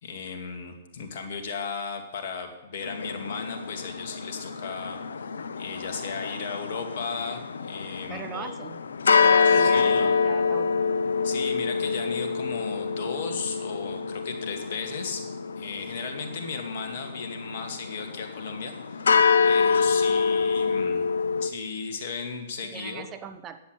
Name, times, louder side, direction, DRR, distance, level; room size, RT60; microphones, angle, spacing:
voice 1, 0.0-5.3 5.6-8.6 9.5-10.1 11.2-15.2 15.6-19.1 19.4-21.1 21.4-23.1, left 5 dB, 60° left, 5 dB, 2.4 m, -35 dB
sound 1, 2.8-21.5, left 5 dB, 80° left, 0.7 m, -26 dB
voice 2, 8.1-8.8 9.2-10.8 22.6-23.6, right 7 dB, 25° right, 10 dB, 1.0 m, -39 dB
10.5 x 8.3 x 8.4 m, 0.94 s
hypercardioid pair, 120°, 0 cm